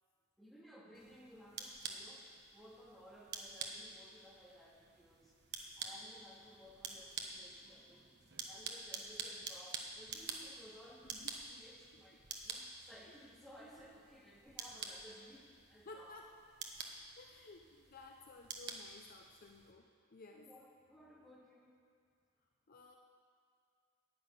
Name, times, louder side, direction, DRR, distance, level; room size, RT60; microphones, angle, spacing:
voice 1, 0.4-11.1 11.6-16.1 20.3-21.8, equal, ahead, -5 dB, 2.4 m, -59 dB
sound 1, 0.9-19.7, right 5 dB, 50° right, 1.3 m, -49 dB
voice 2, 11.1-11.6 15.8-16.2 17.2-19.9 20.1-20.5 22.7-23.0, left 3 dB, 40° left, 2 dB, 0.7 m, -55 dB
10.5 x 10.0 x 7.9 m, 2.2 s
head